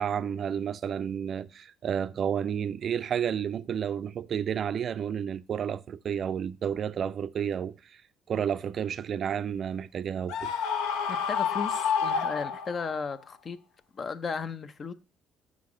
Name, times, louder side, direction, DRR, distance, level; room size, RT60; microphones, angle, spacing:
voice 1, 0.0-8.0 8.3-10.5, right 8 dB, 55° right, 0.3 m, -31 dB
Screaming, 10.3-13.0, left 6 dB, 85° left, 0.6 m, -29 dB
voice 2, 11.1-13.6 13.9-14.9, left 5 dB, 45° left, 0.6 m, -35 dB
6.1 x 5.8 x 3.7 m
supercardioid pair, 80°, 0 cm